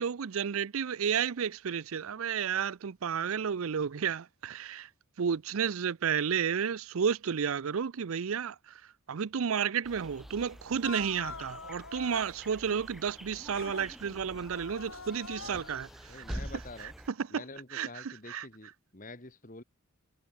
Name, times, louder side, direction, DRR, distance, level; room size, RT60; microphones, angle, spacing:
voice 1, 0.0-4.9 5.2-8.8 9.1-16.4 16.8-16.9 17.2-17.4 17.7-18.5, right 7 dB, 75° right, 0.5 m, -32 dB
sound 1, 9.8-17.1, equal, ahead, 7.0 m, -46 dB
sound 2, 10.8-12.4 13.5-13.9 14.3-16.0 16.7-16.9, left 4 dB, 70° left, 3.2 m, -44 dB
voice 2, 16.1-16.9 17.3-19.6, left 2 dB, 35° left, 2.0 m, -47 dB
head